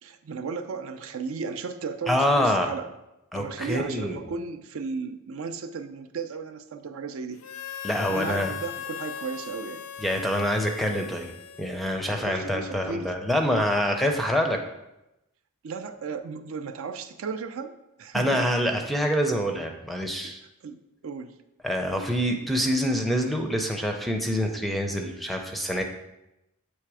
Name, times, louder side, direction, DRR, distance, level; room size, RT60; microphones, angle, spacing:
voice 1, 0.0-2.9 3.3-7.4 8.1-9.9 12.1-13.1 15.6-17.7 18.0-18.5 20.2-20.4 20.6-21.3, right 5 dB, 65° right, 8 dB, 0.4 m, -35 dB
voice 2, 2.1-2.7 3.3-4.2 7.8-8.5 10.0-11.3 11.6-14.6 18.1-20.4 21.6-25.8, equal, ahead, 3 dB, 0.4 m, -26 dB
Harmonica, 7.4-12.3, left 9 dB, 80° left, 0.4 m, -39 dB
7.8 x 3.2 x 4.7 m, 0.92 s
head